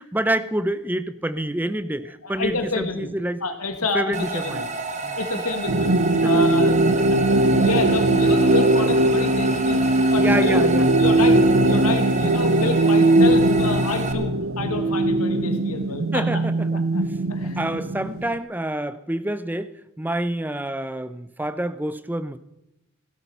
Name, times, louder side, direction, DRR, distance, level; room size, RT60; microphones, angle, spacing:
voice 1, 0.0-3.4 3.9-4.6 5.0-5.4 6.2-6.5 10.2-10.9 14.8-14.9 16.1-16.8 17.6-22.4, right 1 dB, 10° right, 13 dB, 0.6 m, -27 dB
voice 2, 2.2-3.1 3.4-4.7 5.2-5.9 6.2-9.8 10.1-10.6 11.0-16.4 16.9-17.0 17.3-17.6, left 3 dB, 90° left, 6 dB, 1.7 m, -29 dB
sound 1, 4.1-14.1, right 3 dB, 30° right, 1.2 m, -30 dB
sound 2, 5.7-18.3, right 1 dB, 70° right, 0.9 m, -19 dB
16.5 x 12.5 x 5.7 m, 0.88 s
head